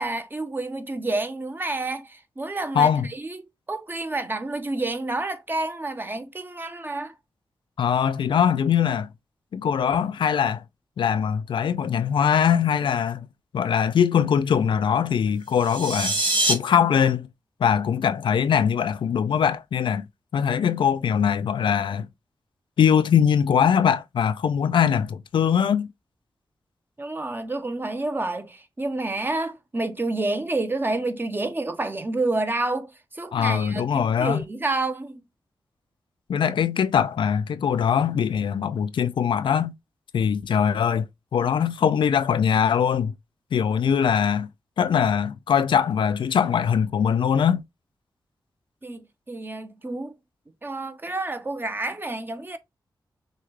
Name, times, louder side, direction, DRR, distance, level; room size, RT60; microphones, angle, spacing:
voice 1, 0.0-3.4 3.7-7.1 27.0-35.2 48.8-50.2 50.6-52.6, right 2 dB, 25° right, 0.8 m, -29 dB
voice 2, 2.7-3.1 7.8-9.1 9.5-10.6 11.0-13.2 13.5-16.2 16.5-17.3 17.6-20.0 20.3-22.1 22.8-25.9 33.3-34.4 36.3-39.7 40.1-41.1 41.3-43.1 43.5-44.5 44.8-47.6, left 8 dB, 85° left, 0.4 m, -22 dB
sound 1, 15.5-16.5, right 2 dB, 85° right, 1.6 m, -24 dB
6.5 x 2.3 x 3.1 m
wide cardioid pair, 90°, 8 cm